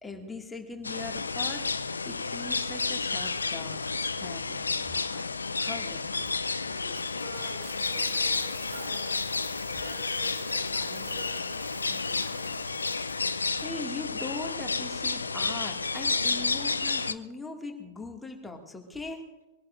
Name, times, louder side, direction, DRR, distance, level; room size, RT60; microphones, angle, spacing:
voice 1, 0.0-3.8 4.2-5.2 5.6-6.0 13.6-19.2, left 3 dB, 10° left, 2.1 m, -40 dB
sound 1, 0.8-17.1, left 4 dB, 80° left, 0.5 m, -31 dB
voice 2, 5.6-12.8, right 1 dB, 75° right, 5.0 m, -48 dB
Coin (dropping), 6.2-13.7, right 5 dB, 40° right, 2.4 m, -50 dB
23.5 x 17.5 x 2.6 m
figure-of-eight pair, 95°, 0 cm